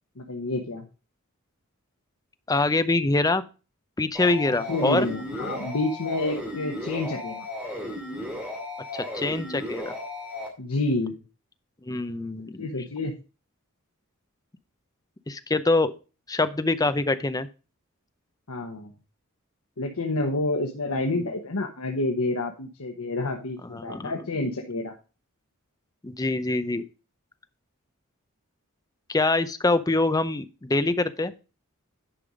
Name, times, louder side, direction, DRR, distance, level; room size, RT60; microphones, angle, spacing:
voice 1, 0.2-0.9 4.7-7.5 10.6-11.2 12.6-13.2 18.5-18.9 19.8-24.9, left 2 dB, 85° left, 3 dB, 1.1 m, -29 dB
voice 2, 2.5-3.4 4.0-5.1 8.9-9.9 11.9-12.7 15.3-15.9 16.3-17.5 21.1-21.3 23.7-24.1 26.0-26.8 29.1-31.3, left 2 dB, 15° left, 11 dB, 0.6 m, -24 dB
sound 1, 4.2-10.5, left 1 dB, 5° right, 2.6 m, -35 dB
10.0 x 5.5 x 5.0 m, 0.33 s
head